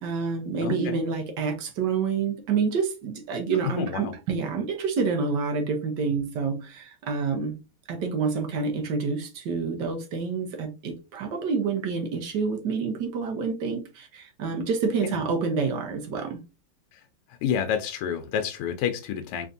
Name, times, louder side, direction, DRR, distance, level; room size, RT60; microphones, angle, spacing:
voice 1, 0.0-7.5 7.9-16.4, right 5 dB, 60° right, 1.3 m, -28 dB
voice 2, 0.6-1.0 3.6-4.1 15.0-15.2 16.9-17.0 17.3-19.5, left 8 dB, 90° left, 1.6 m, -29 dB
4.0 x 3.5 x 2.6 m
omnidirectional pair, 2.4 m